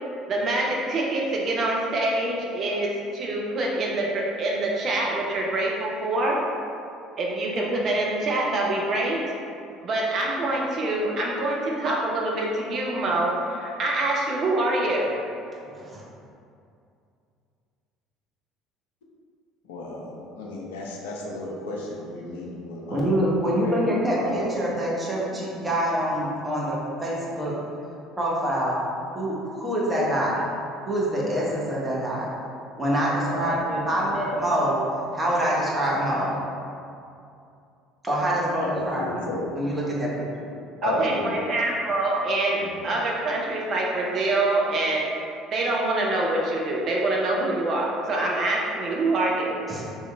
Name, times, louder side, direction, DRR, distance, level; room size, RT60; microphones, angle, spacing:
voice 1, 0.3-6.4 7.2-9.2 9.8-15.1 40.8-45.1 45.5-49.5, right 2 dB, 40° right, -2 dB, 0.4 m, -25 dB
voice 2, 15.7-16.0 22.9-27.5 28.2-28.8 29.1-30.4 30.9-32.3 32.8-34.8 35.1-36.4 38.0-39.3 39.6-40.5 49.7-49.8, equal, 15° right, -6 dB, 0.8 m, -25 dB
voice 3, 19.7-23.1 23.6-23.8 24.2-24.6 33.2-34.2 38.6-39.5 40.8-41.4 42.5-42.9, left 1 dB, 65° left, -3 dB, 0.4 m, -33 dB
2.8 x 2.3 x 3.2 m, 2.5 s
figure-of-eight pair, 60°, 0 cm